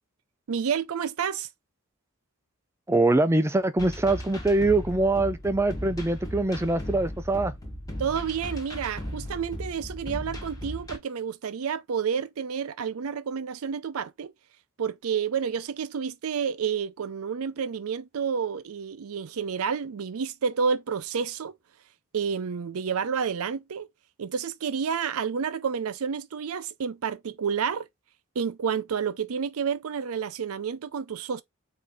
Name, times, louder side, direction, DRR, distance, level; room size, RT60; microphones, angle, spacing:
voice 1, 0.5-1.5 8.0-14.3 14.8-21.5 22.1-23.9 24.2-27.9 28.4-31.4, right 6 dB, 85° right, 0.5 m, -30 dB
voice 2, 2.9-7.5, right 2 dB, 10° right, 0.3 m, -23 dB
sound 1, 3.8-11.0, equal, 15° left, 1.1 m, -37 dB
4.7 x 2.7 x 3.4 m
head